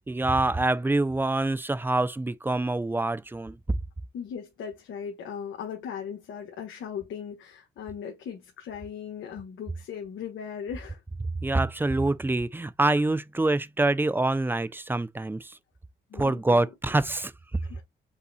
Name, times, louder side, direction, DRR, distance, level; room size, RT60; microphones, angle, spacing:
voice 1, 0.1-3.8 11.4-15.6 16.1-17.6, right 2 dB, 10° right, 0.5 m, -26 dB
voice 2, 4.1-11.0 16.1-16.7 17.6-17.8, left 7 dB, 75° left, 1.5 m, -38 dB
5.6 x 2.3 x 4.1 m
cardioid pair, 90°, 20 cm